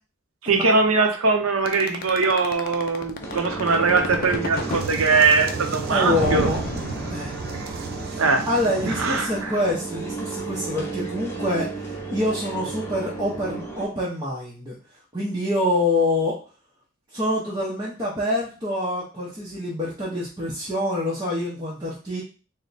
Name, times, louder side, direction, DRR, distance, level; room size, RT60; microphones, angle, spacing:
voice 1, 0.4-6.5 8.2-8.5 8.8-9.5, right 4 dB, 80° right, 5 dB, 0.7 m, -21 dB
sound 1, 1.7-4.9 6.2-7.6, left 4 dB, 45° left, 0.4 m, -31 dB
sound 2, 3.2-13.9, right 4 dB, 10° left, 0.7 m, -33 dB
sound 3, 4.0-9.2, right 4 dB, 45° right, 0.4 m, -33 dB
voice 2, 5.9-6.6 7.1-7.4 8.0-14.8 15.1-16.4 17.1-22.2, left 1 dB, 20° right, -6 dB, 0.7 m, -26 dB
3.4 x 2.1 x 4.0 m, 0.36 s
head